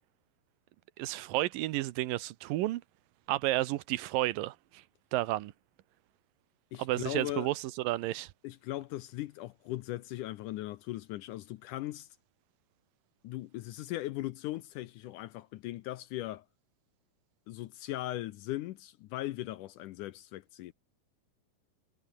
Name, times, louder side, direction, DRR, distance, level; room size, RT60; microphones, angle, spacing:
voice 1, 1.0-2.8 3.3-4.8 5.1-5.5 6.8-8.3, right 16 dB, 80° right, 2.5 m, -31 dB
voice 2, 6.7-7.5 8.4-12.1 13.2-16.5 17.5-20.7, left 15 dB, 75° left, 2.0 m, -39 dB
omnidirectional pair, 4.1 m